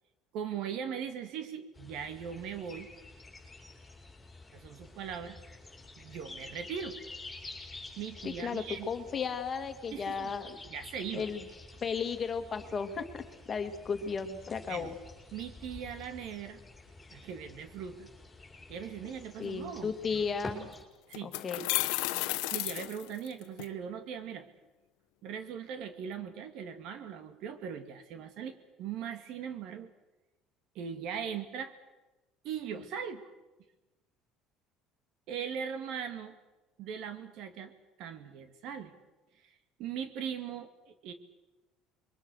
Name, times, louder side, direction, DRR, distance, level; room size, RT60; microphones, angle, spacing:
voice 1, 0.3-2.9 4.5-5.4 6.0-7.0 8.0-8.9 9.9-10.3 10.6-11.3 14.7-14.9 15.3-16.6 17.1-18.1 18.7-20.3 21.1-21.3 22.1-24.5 25.2-29.9 30.7-31.8 32.4-33.3 35.3-36.3 36.8-37.7 38.0-38.9 39.8-41.1, right 7 dB, 60° right, 9 dB, 2.2 m, -40 dB
sound 1, 1.7-20.8, left 2 dB, 10° left, 5.3 m, -49 dB
voice 2, 8.2-10.6 11.1-11.4 11.8-13.0 13.5-15.0 19.4-20.7 21.2-21.6, left 6 dB, 30° left, 7 dB, 2.1 m, -34 dB
sound 2, 20.5-20.6 21.1-23.6, left 20 dB, 90° left, 1.0 m, -32 dB
28.0 x 22.5 x 6.4 m, 1.1 s
cardioid pair, 140°, 0 cm